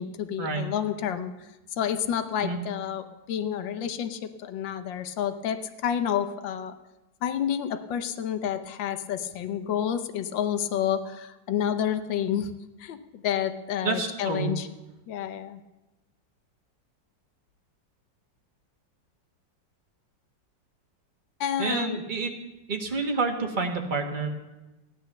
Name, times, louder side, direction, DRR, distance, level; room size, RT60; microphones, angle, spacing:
voice 1, 0.0-1.3 1.8-6.7 7.2-12.5 12.8-14.7 15.1-15.6 21.4-22.0, left 9 dB, 85° left, 10 dB, 1.5 m, -29 dB
voice 2, 13.8-14.5 21.6-22.3 22.7-24.3, right 4 dB, 30° right, 2 dB, 1.5 m, -28 dB
14.5 x 10.5 x 6.7 m, 1.0 s
omnidirectional pair, 2.0 m